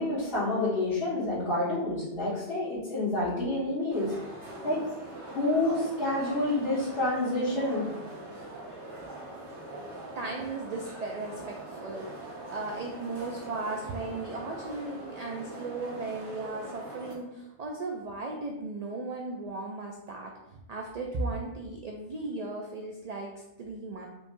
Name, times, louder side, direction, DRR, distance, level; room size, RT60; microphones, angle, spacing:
voice 1, 0.0-4.1 4.6-4.8 5.3-7.8, left 2 dB, 55° left, -14 dB, 1.8 m, -28 dB
sound 1, 3.9-17.1, right 2 dB, 90° right, 1.5 m, -42 dB
voice 2, 10.2-24.1, right 3 dB, 60° right, 1 dB, 0.4 m, -36 dB
5.2 x 3.2 x 2.6 m, 0.92 s
omnidirectional pair, 1.1 m